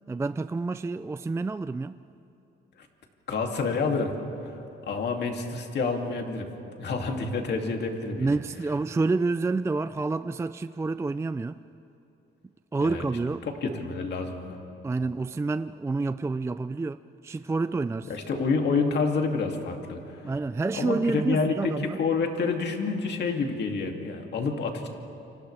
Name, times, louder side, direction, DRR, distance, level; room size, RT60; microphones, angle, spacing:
voice 1, 0.1-2.0 8.2-11.6 12.7-13.8 14.8-18.1 20.2-22.0, right 3 dB, 15° right, 0.4 m, -28 dB
voice 2, 3.3-4.1 4.4-4.5 4.9-6.5 6.8-8.3 12.8-13.1 13.4-14.6 18.1-20.3 20.7-24.9, left 4 dB, 60° left, 2.5 m, -28 dB
29.5 x 26.0 x 3.4 m
cardioid pair, 90°, 20 cm